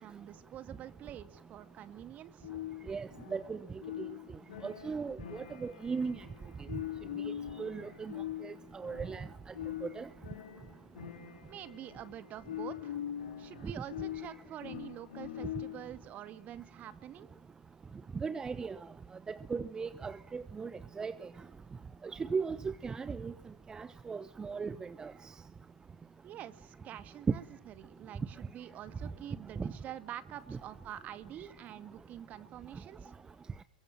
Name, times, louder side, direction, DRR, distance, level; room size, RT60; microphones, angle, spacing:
voice 1, 0.0-2.5 11.5-13.0 13.4-17.3 26.2-33.1, right 11 dB, 35° right, 2.2 m, -47 dB
sound 1, 2.4-16.0, left 11 dB, 75° left, 4.1 m, -43 dB
voice 2, 2.9-3.6 4.0-4.1 4.6-6.2 7.6-8.1 8.4-9.3 9.9-10.1 18.2-18.8 19.3-20.7 21.0-21.1 22.1-23.3 23.7-25.1 27.3-27.4 29.6-29.7 30.5-30.6, right 5 dB, 15° right, 1.0 m, -37 dB
28.0 x 23.0 x 7.6 m
hypercardioid pair, 100°, 4 cm